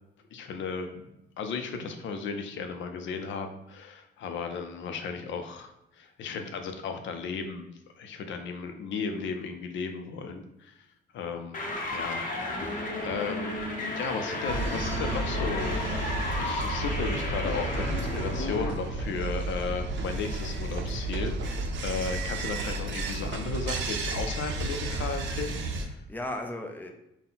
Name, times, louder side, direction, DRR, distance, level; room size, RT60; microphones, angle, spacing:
voice 1, 0.3-7.7 8.0-10.7 11.1-12.2 12.6-15.8 16.4-26.0, left 5 dB, 70° left, 6 dB, 0.5 m, -35 dB
sound 1, 11.5-18.7, left 2 dB, 45° left, 0.8 m, -33 dB
sound 2, 14.5-25.9, right 2 dB, 70° right, 0.5 m, -32 dB
voice 2, 17.7-18.1 24.8-25.1 25.9-26.9, left 1 dB, 10° left, 3 dB, 0.5 m, -38 dB
3.9 x 2.2 x 3.9 m, 0.87 s
cardioid pair, 90°, 20 cm